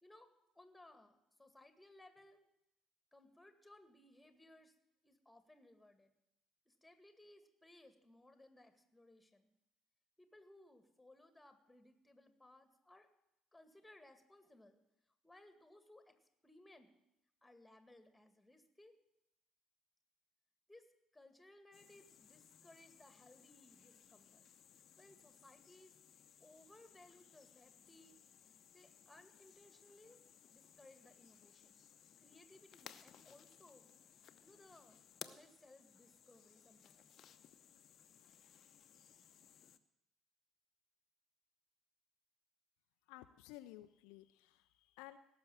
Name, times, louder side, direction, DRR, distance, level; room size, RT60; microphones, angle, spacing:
voice 1, 0.0-2.5 3.1-4.7 5.0-6.1 6.7-9.5 10.2-13.1 13.5-14.8 15.2-16.1 16.4-16.9 17.4-18.9 20.7-20.9 21.1-24.5 25.0-26.0 26.4-28.2 28.7-30.2 30.5-31.8 32.2-33.9 34.4-37.1, left 1 dB, 5° left, 8 dB, 2.1 m, -63 dB
sound 1, 21.7-39.8, left 9 dB, 45° left, 0.9 m, -61 dB
voice 2, 43.1-45.2, left 15 dB, 60° left, 10 dB, 0.5 m, -55 dB
17.5 x 6.9 x 9.2 m, 0.83 s
figure-of-eight pair, 55°, 0 cm